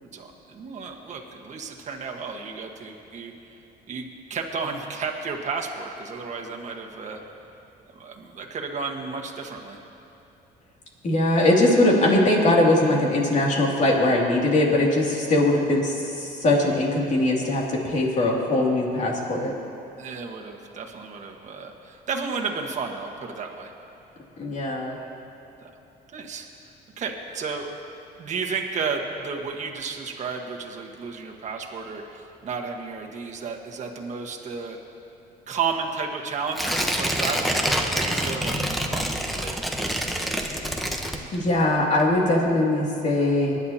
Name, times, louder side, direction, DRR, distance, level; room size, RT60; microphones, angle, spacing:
voice 1, 0.1-3.3 3.9-7.2 7.9-9.8 20.0-23.7 25.6-25.7 26.1-26.5 27.0-27.7 28.2-34.8 35.5-39.9, right 5 dB, 45° right, 2 dB, 1.5 m, -32 dB
voice 2, 11.0-19.5 24.4-25.0 41.3-43.6, left 1 dB, 45° left, -2 dB, 2.6 m, -21 dB
Tearing, 36.5-41.6 42.0-42.1, equal, ahead, 1.0 m, -26 dB
24.0 x 10.5 x 2.9 m, 2.8 s
cardioid pair, 110°, 17 cm